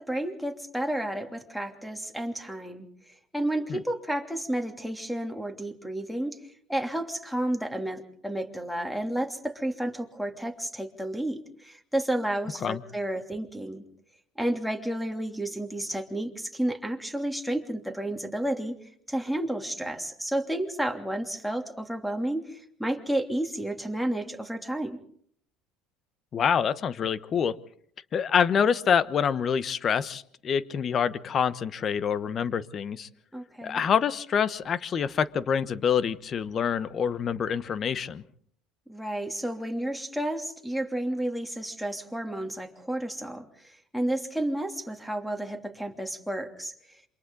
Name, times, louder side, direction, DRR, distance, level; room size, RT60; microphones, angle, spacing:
voice 1, 0.0-2.8 3.3-6.4 6.7-13.8 14.4-18.7 19.1-25.0 33.3-33.8 38.9-47.0, right 1 dB, ahead, 5 dB, 2.9 m, -31 dB
voice 2, 26.3-27.6 28.1-33.1 33.6-38.2, left 7 dB, 40° left, 16 dB, 1.1 m, -26 dB
27.5 x 25.5 x 3.9 m, 0.63 s
supercardioid pair, 85°, 0 cm